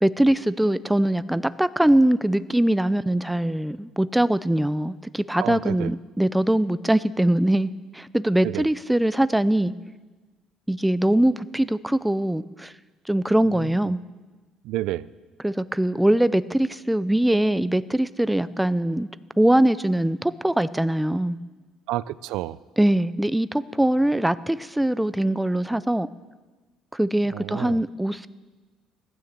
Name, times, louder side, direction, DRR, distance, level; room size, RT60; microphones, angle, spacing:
voice 1, 0.0-9.7 10.7-12.7 13.1-14.0 15.4-19.1 19.4-21.4 22.8-26.1 26.9-28.3, right 1 dB, 5° right, 15 dB, 0.3 m, -22 dB
voice 2, 5.4-5.9 8.4-8.6 14.6-15.1 21.9-22.6 27.3-27.8, right 16 dB, 80° right, 18 dB, 0.4 m, -29 dB
15.0 x 9.6 x 7.4 m, 1.3 s
cardioid pair, 155°, 0 cm